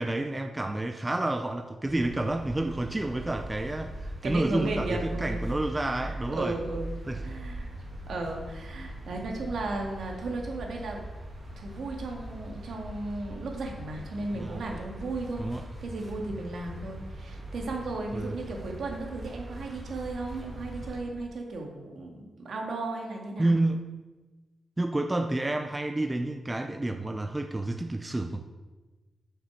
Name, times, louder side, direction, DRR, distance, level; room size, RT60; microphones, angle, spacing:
voice 1, 0.0-6.6 7.1-7.2 14.3-14.6 15.4-15.6 18.1-18.3 23.4-23.8 24.8-28.4, right 2 dB, 15° right, 6 dB, 0.4 m, -29 dB
sound 1, 1.8-21.0, right 1 dB, 30° right, 2.0 m, -40 dB
voice 2, 4.2-5.5 5.9-6.9 7.2-7.7 8.1-11.0 11.6-15.5 15.8-23.5, right 2 dB, 70° right, 1 dB, 1.9 m, -35 dB
7.6 x 6.8 x 6.2 m, 1.2 s
wide cardioid pair, 160°, 0 cm